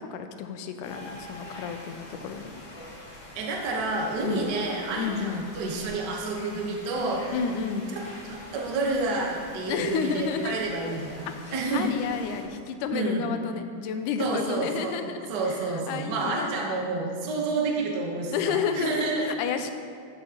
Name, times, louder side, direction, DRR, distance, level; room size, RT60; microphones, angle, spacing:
voice 1, 0.0-2.6 4.2-4.5 4.9-5.4 7.3-7.9 9.7-10.6 11.3-11.4 11.7-15.6 15.9-16.7 18.3-19.7, left 6 dB, 85° left, 8 dB, 2.1 m, -31 dB
sound 1, 0.8-12.4, left 1 dB, 45° left, 1.9 m, -44 dB
voice 2, 3.3-7.2 7.9-8.0 8.3-11.9 12.9-13.2 14.2-15.0 15.3-19.2, right 3 dB, 80° right, -1 dB, 0.9 m, -29 dB
14.0 x 5.9 x 2.9 m, 2.3 s
omnidirectional pair, 3.6 m